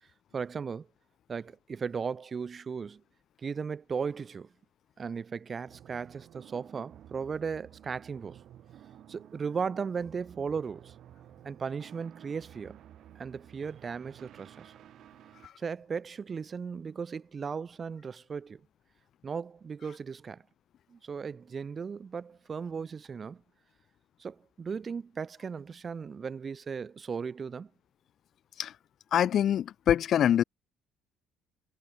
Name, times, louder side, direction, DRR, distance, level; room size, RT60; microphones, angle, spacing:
voice 1, 0.3-0.9 1.3-3.0 3.4-4.5 5.0-8.4 9.1-11.0 11.4-12.8 13.2-14.7 15.6-18.6 19.2-20.4 20.9-23.4 24.2-27.7, right 6 dB, 35° right, 7.3 m, -36 dB
sound 1, 5.7-15.5, right 11 dB, 50° right, 6.6 m, -53 dB
voice 2, 29.1-30.4, left 10 dB, 50° left, 0.3 m, -25 dB
figure-of-eight pair, 50°, 0 cm